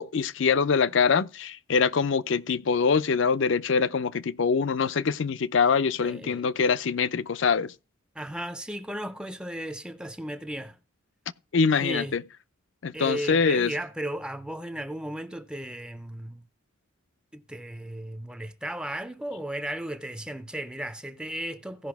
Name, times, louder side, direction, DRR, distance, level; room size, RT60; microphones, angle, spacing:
voice 1, 0.0-7.7 11.5-12.2 12.8-13.7, left 5 dB, 60° left, 0.5 m, -24 dB
voice 2, 6.0-6.5 8.1-10.8 11.7-12.2 12.9-16.5 17.3-21.9, right 1 dB, 5° right, 0.5 m, -35 dB
16.5 x 5.5 x 3.4 m
head